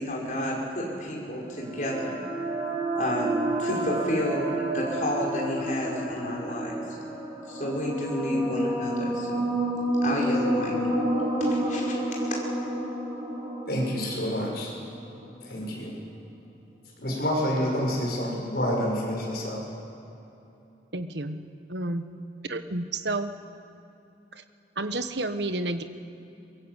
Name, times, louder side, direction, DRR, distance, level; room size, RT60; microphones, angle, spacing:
voice 1, 0.0-2.2 2.9-6.8 7.5-9.4 10.0-10.8 11.4-12.4, left 1 dB, 45° left, -3 dB, 5.8 m, -30 dB
sound 1, 1.5-15.1, right 1 dB, 15° right, 6.9 m, -30 dB
voice 2, 13.7-14.7 15.4-16.0 17.0-19.6, equal, 60° left, -1 dB, 6.6 m, -28 dB
voice 3, 20.9-21.4 21.7-22.0 22.4-23.3 24.3-24.4 24.7-25.8, right 2 dB, 80° right, 9 dB, 1.4 m, -30 dB
23.0 x 22.5 x 8.3 m, 2.9 s
head